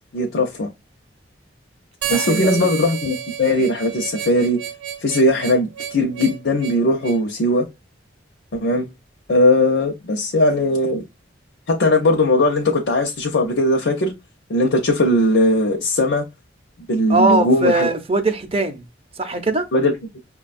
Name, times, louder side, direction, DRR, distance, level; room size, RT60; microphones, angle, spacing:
voice 1, 0.1-0.7 2.1-4.6 5.0-7.7 8.5-8.9 9.3-11.0 11.7-14.1 14.5-16.2 16.9-17.9 19.7-20.2, left 1 dB, 70° left, 0.6 m, -19 dB
voice 2, 2.0-2.7 17.1-18.8 19.2-19.7, right 2 dB, 30° right, 0.5 m, -20 dB
Harmonica, 2.0-7.2, right 9 dB, 80° right, 0.6 m, -30 dB
5.7 x 2.2 x 2.5 m
head